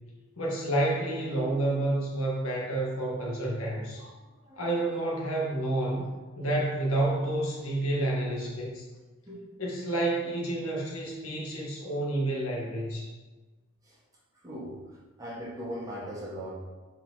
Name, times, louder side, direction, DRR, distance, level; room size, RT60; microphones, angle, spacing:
voice 1, 0.4-4.1 4.6-8.9 9.6-13.1, right 1 dB, 80° left, -3 dB, 1.6 m, -29 dB
voice 2, 4.0-4.7 9.3-9.4 13.8-14.0 14.4-16.7, equal, 15° right, -6 dB, 1.4 m, -40 dB
5.0 x 4.9 x 4.0 m, 1.3 s
head